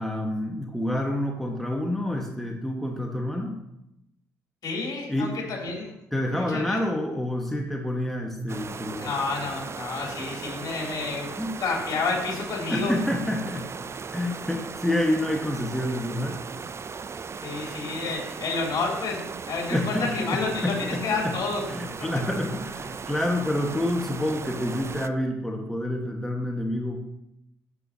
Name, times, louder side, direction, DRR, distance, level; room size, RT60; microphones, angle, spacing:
voice 1, 0.0-3.6 5.1-5.3 6.1-9.1 11.4-11.5 12.7-13.8 14.1-16.5 19.7-20.1 20.6-21.0 21.7-27.0, left 1 dB, 5° left, 1 dB, 1.5 m, -28 dB
voice 2, 4.6-5.9 6.3-6.8 9.0-13.0 17.4-21.7, left 4 dB, 55° left, -2 dB, 3.1 m, -30 dB
sound 1, 8.5-25.1, right 5 dB, 35° right, 0.4 m, -37 dB
11.0 x 6.8 x 2.8 m, 0.85 s
hypercardioid pair, 50°, 8 cm